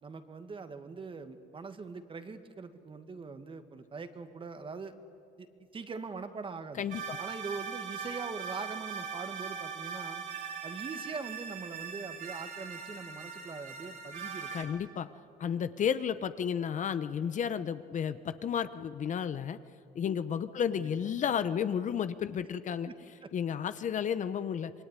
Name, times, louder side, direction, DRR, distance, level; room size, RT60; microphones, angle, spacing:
voice 1, 0.0-4.9 5.4-5.5 5.7-6.9 7.2-10.2 10.6-14.5 20.8-21.2 22.9-23.3, right 4 dB, 30° right, 9 dB, 1.8 m, -42 dB
voice 2, 6.8-7.2 14.5-15.1 15.4-19.6 19.9-22.9 23.3-24.7, left 8 dB, 45° left, 12 dB, 1.0 m, -32 dB
sound 1, 6.9-14.6, right 6 dB, 55° right, 5.0 m, -40 dB
26.5 x 21.5 x 9.8 m, 2.4 s
cardioid pair, 110°, 17 cm